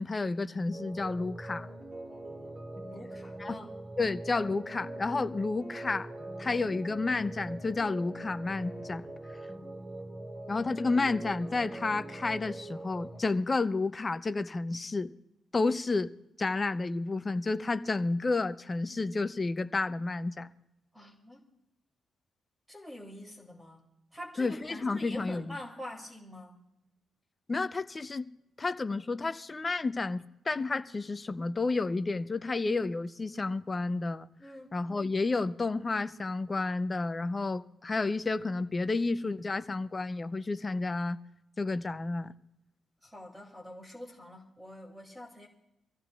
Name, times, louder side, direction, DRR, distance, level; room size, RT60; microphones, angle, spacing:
voice 1, 0.0-1.7 3.4-3.5 4.0-6.1 6.4-9.1 10.5-15.1 15.5-16.1 16.4-20.5 24.4-25.6 27.5-28.3 28.6-34.3 34.7-41.2 41.6-42.3, left 3 dB, 25° left, 0.5 m, -31 dB
sound 1, 0.7-13.2, right 2 dB, 25° right, 1.9 m, -42 dB
voice 2, 2.9-3.8 20.9-21.5 22.7-23.9 24.1-26.6 34.4-34.8 43.0-45.5, left 1 dB, 5° right, 2.4 m, -45 dB
25.0 x 15.0 x 2.3 m
cardioid pair, 130°, 0 cm